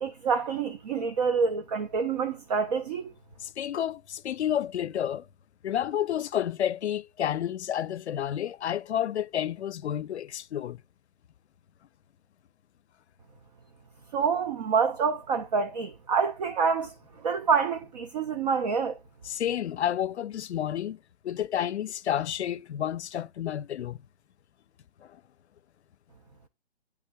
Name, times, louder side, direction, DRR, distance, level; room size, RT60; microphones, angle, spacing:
voice 1, 0.0-3.1 14.1-16.9 17.2-19.0, right 5 dB, 40° right, 0.6 m, -27 dB
voice 2, 3.4-5.3 5.6-10.8 19.2-21.0 21.2-24.0, left 10 dB, 80° left, 0.5 m, -30 dB
8.5 x 3.5 x 3.4 m
hypercardioid pair, 145°, 33 cm